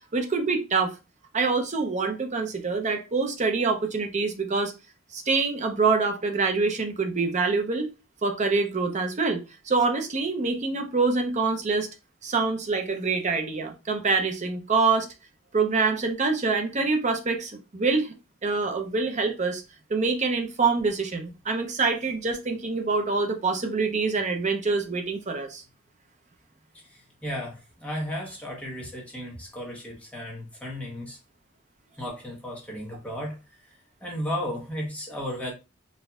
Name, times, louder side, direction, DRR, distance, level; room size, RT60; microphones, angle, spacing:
voice 1, 0.1-0.9 1.3-4.7 5.1-7.9 8.2-11.9 12.2-15.1 15.5-18.1 18.4-19.6 19.9-25.6, right 4 dB, 35° right, 5 dB, 0.6 m, -25 dB
voice 2, 26.7-31.2 32.0-33.4 34.0-35.5, equal, 5° left, -3 dB, 1.1 m, -34 dB
4.1 x 2.6 x 2.3 m, 0.28 s
head